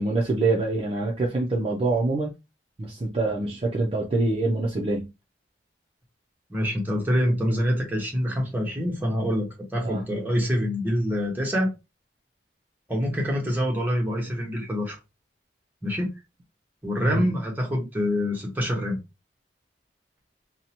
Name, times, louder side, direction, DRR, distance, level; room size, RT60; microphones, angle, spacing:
voice 1, 0.0-2.3 2.8-5.1 9.8-10.0 17.0-17.3, right 2 dB, 30° right, 0.4 m, -25 dB
voice 2, 6.5-11.7 12.9-15.0 15.8-16.1 16.8-19.0, equal, 10° right, 0.9 m, -26 dB
2.7 x 2.1 x 2.8 m
head